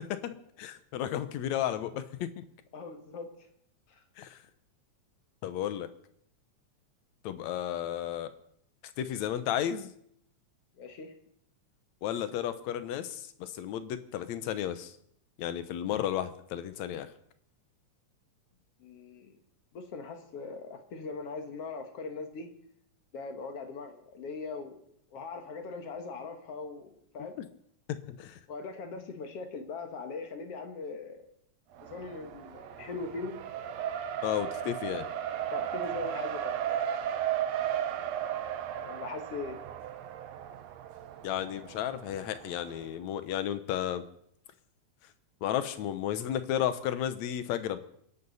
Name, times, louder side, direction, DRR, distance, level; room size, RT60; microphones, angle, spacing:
voice 1, 0.1-2.4 4.2-4.4 5.4-5.9 7.2-8.3 9.0-9.9 12.0-14.9 15.4-17.1 27.4-27.5 27.9-28.4 34.2-35.1 41.2-44.0 45.4-47.8, left 11 dB, 75° left, 12 dB, 2.2 m, -33 dB
voice 2, 2.7-3.3 3.9-4.0 10.8-11.1 18.8-19.3 19.7-22.5 23.1-24.8 25.1-27.3 28.5-31.3 31.8-33.4 35.5-36.6 38.8-39.6, left 4 dB, 60° left, 6 dB, 2.3 m, -40 dB
Race car auto racing, 31.8-42.8, right 10 dB, 70° right, 2.0 m, -35 dB
28.0 x 11.5 x 4.1 m, 0.69 s
omnidirectional pair, 3.3 m